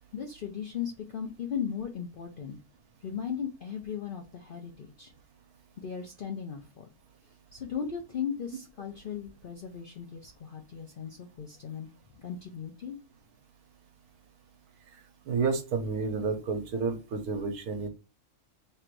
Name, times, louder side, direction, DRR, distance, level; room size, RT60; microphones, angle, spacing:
voice 1, 0.1-2.6 3.0-5.1 5.8-6.8 7.5-11.9 12.1-13.0, left 7 dB, 65° left, 2 dB, 0.5 m, -37 dB
voice 2, 15.3-17.9, right 4 dB, 75° right, 5 dB, 1.3 m, -30 dB
3.3 x 2.5 x 4.5 m, 0.31 s
omnidirectional pair, 1.6 m